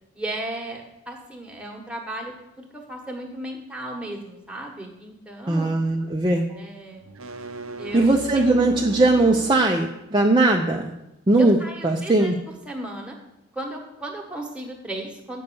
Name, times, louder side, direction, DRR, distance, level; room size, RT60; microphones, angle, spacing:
voice 1, 0.1-5.8 6.5-7.1 7.8-8.5 11.4-12.3 12.6-13.2 13.5-15.4, right 1 dB, 5° right, 0 dB, 1.2 m, -35 dB
voice 2, 5.5-6.4 7.9-10.9 11.3-11.6 11.8-12.4, right 2 dB, 20° right, 1 dB, 0.5 m, -19 dB
sound 1, 7.0-9.8, right 4 dB, 85° right, 0.6 m, -36 dB
8.1 x 5.4 x 6.9 m, 0.88 s
head